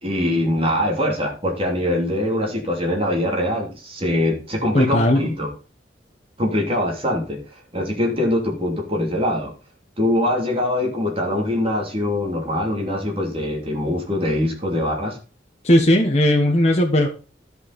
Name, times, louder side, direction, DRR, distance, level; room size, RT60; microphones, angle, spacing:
voice 1, 0.0-5.5 6.4-7.4 7.7-9.5 10.0-15.2, left 1 dB, 30° right, 0 dB, 3.0 m, -23 dB
voice 2, 4.7-5.2 15.6-17.1, left 1 dB, 35° left, 1 dB, 1.2 m, -17 dB
13.0 x 5.7 x 4.1 m, 0.34 s
head